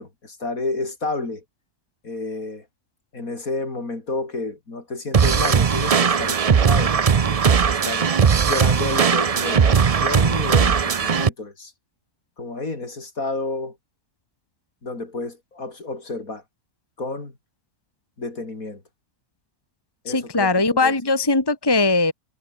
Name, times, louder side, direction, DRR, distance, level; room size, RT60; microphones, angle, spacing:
voice 1, 0.0-1.4 2.0-2.7 3.1-8.0 8.4-11.7 12.4-13.8 14.8-16.4 17.0-17.3 18.2-18.8 20.0-20.9, left 3 dB, 60° left, 4.6 m, -30 dB
sound 1, 5.1-11.3, right 6 dB, 65° right, 0.3 m, -18 dB
voice 2, 20.1-22.1, left 3 dB, 15° left, 1.9 m, -20 dB
omnidirectional pair, 1.6 m